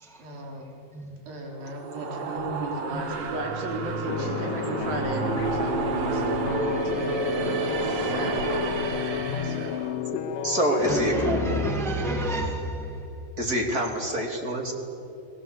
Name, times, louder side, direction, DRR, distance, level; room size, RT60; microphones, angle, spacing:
voice 1, 0.2-0.7 1.3-9.1 9.4-9.9, right 2 dB, 80° right, 1 dB, 5.4 m, -35 dB
sound 1, 1.6-9.9, right 3 dB, 55° right, 2.6 m, -30 dB
voice 2, 2.4-3.2 10.8-13.0, right 1 dB, ahead, 2 dB, 1.1 m, -30 dB
sound 2, 4.1-11.7, left 10 dB, 80° left, 2.5 m, -32 dB
voice 3, 10.1-11.6 13.4-14.7, right 1 dB, 25° right, 2 dB, 3.0 m, -26 dB
30.0 x 20.0 x 8.1 m, 2.7 s
omnidirectional pair, 4.1 m